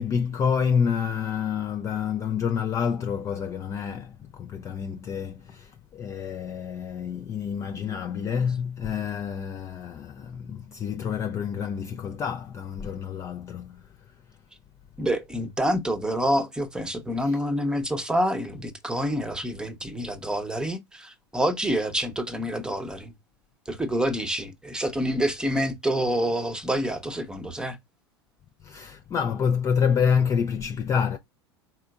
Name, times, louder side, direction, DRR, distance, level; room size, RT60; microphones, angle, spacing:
voice 1, 0.0-13.8 17.2-17.4 28.6-31.2, left 7 dB, 20° left, 0.4 m, -28 dB
voice 2, 15.0-23.1 23.7-27.8, equal, 5° right, 0.8 m, -27 dB
4.3 x 3.7 x 2.3 m
figure-of-eight pair, 85°, 14 cm